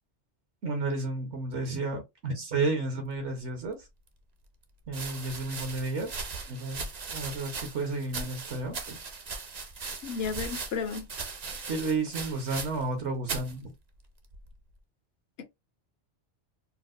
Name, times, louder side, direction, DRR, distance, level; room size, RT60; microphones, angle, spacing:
voice 1, 0.6-3.8 4.9-6.2 6.5-9.0 11.7-13.7, right 3 dB, 75° right, 1.2 m, -32 dB
sound 1, 3.8-3.9 4.8-13.0 13.2-13.5 14.3-14.7, right 4 dB, 45° right, 0.6 m, -39 dB
voice 2, 10.0-11.1 15.4-15.5, left 5 dB, 65° left, 0.8 m, -33 dB
4.5 x 2.0 x 2.4 m
omnidirectional pair, 1.2 m